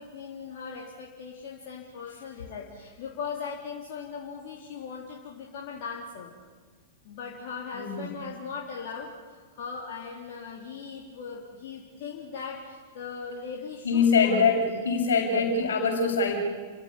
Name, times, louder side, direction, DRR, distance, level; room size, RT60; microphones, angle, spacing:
voice 1, 0.0-6.4 7.0-14.7 15.3-15.6, left 5 dB, 45° left, -2 dB, 4.0 m, -39 dB
voice 2, 7.7-8.1 13.8-16.4, left 4 dB, 65° left, 2 dB, 6.9 m, -23 dB
29.5 x 17.0 x 10.0 m, 1.5 s
figure-of-eight pair, 95°, 0 cm